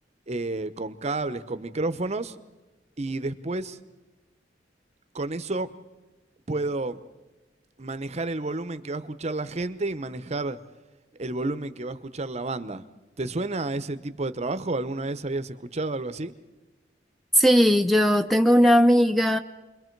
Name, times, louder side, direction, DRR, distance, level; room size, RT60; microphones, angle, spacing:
voice 1, 0.3-2.3 3.0-3.8 5.1-5.7 6.5-7.0 7.8-10.6 11.2-12.8 13.2-16.3, right 2 dB, 35° right, 12 dB, 0.8 m, -30 dB
voice 2, 17.3-19.4, equal, ahead, 7 dB, 0.6 m, -18 dB
29.5 x 22.0 x 4.6 m, 1.1 s
head